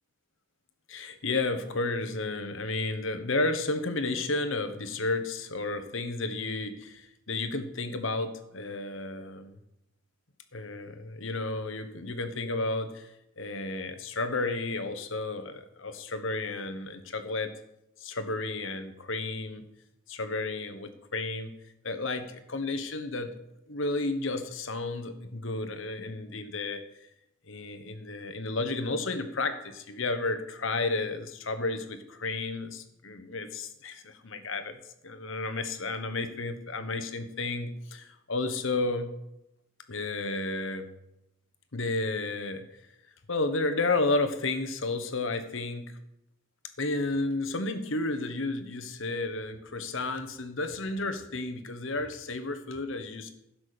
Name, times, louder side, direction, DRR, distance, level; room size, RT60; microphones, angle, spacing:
voice 1, 0.9-9.5 10.5-17.5 18.0-19.6 20.1-21.5 21.8-23.3 23.7-26.8 27.5-34.8 35.0-39.2 39.9-40.9 41.7-42.7 43.3-46.0 46.8-53.3, left 3 dB, 70° left, 9 dB, 1.3 m, -32 dB
15.5 x 6.0 x 6.8 m, 0.85 s
head